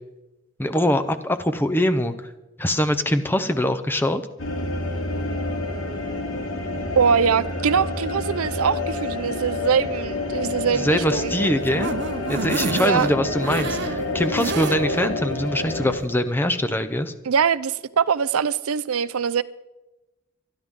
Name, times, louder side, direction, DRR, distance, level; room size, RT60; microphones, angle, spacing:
voice 1, 0.6-2.1 2.6-4.2 10.7-11.9 12.3-17.1, left 1 dB, 10° left, 0.7 m, -23 dB
sound 1, 4.4-16.0, left 2 dB, 70° left, 3.2 m, -28 dB
voice 2, 7.0-11.3 12.8-13.1 17.2-19.4, right 6 dB, 85° right, 0.6 m, -22 dB
sound 2, 11.1-15.1 15.5-15.6 15.9-16.0, right 4 dB, 55° right, 0.7 m, -30 dB
25.0 x 11.0 x 3.8 m
head